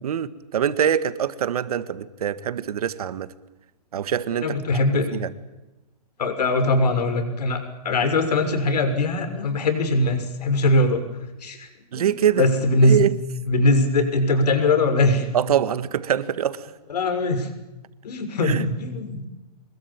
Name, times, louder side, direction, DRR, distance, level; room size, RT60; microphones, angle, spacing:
voice 1, 0.0-3.3 3.9-4.6 4.9-5.3 11.9-12.5 12.8-13.2 15.3-16.7 18.4-18.7, right 9 dB, 65° right, 13 dB, 1.8 m, -24 dB
voice 2, 4.4-5.0 6.2-7.6 7.8-11.0 11.4-11.7 11.9-13.0 13.5-15.3 16.9-17.5 18.0-19.3, left 2 dB, 75° left, 7 dB, 6.4 m, -21 dB
26.0 x 22.0 x 8.9 m, 1.0 s
hypercardioid pair, 160°, 21 cm